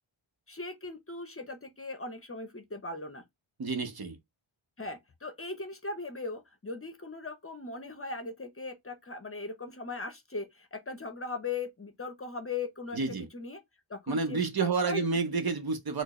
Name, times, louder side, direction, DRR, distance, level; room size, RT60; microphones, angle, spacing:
voice 1, 0.5-3.2 4.8-13.6 13.9-15.0, left 3 dB, 30° left, 0.6 m, -39 dB
voice 2, 3.6-4.2 12.9-13.3 14.1-16.0, right 4 dB, 50° right, 0.8 m, -30 dB
4.4 x 2.0 x 2.9 m
wide cardioid pair, 80°, 49 cm